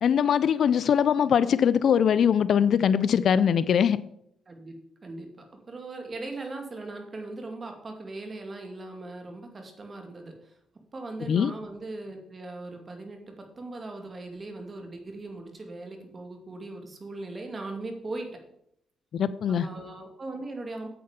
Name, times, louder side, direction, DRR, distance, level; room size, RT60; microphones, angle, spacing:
voice 1, 0.0-4.0 11.3-11.5 19.1-19.7, left 8 dB, 60° left, 17 dB, 0.5 m, -22 dB
voice 2, 5.0-10.5 10.9-18.4 19.5-20.9, right 2 dB, 30° right, 3 dB, 2.5 m, -39 dB
9.5 x 8.0 x 5.2 m, 0.72 s
cardioid pair, 90°, 0 cm